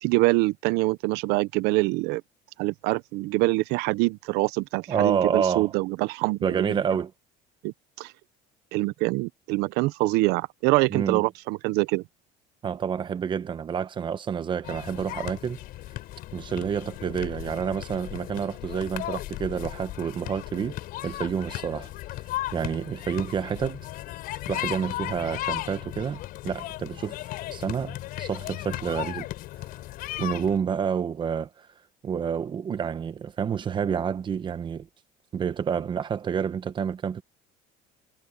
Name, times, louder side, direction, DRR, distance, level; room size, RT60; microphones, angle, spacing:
voice 1, 0.0-2.2 2.6-6.8 7.6-8.1 8.7-12.0, right 22 dB, 70° right, 0.7 m, -25 dB
voice 2, 4.9-5.7 6.4-7.1 10.9-11.2 12.6-15.6 16.3-20.7 21.0-21.9 22.5-23.9 24.5-27.2 27.5-29.3 30.2-31.7 32.0-34.9 35.3-37.2, right 7 dB, 30° right, 1.0 m, -28 dB
sound 1, 14.6-30.6, left 16 dB, 60° left, 5.5 m, -36 dB
cardioid pair, 145°, 17 cm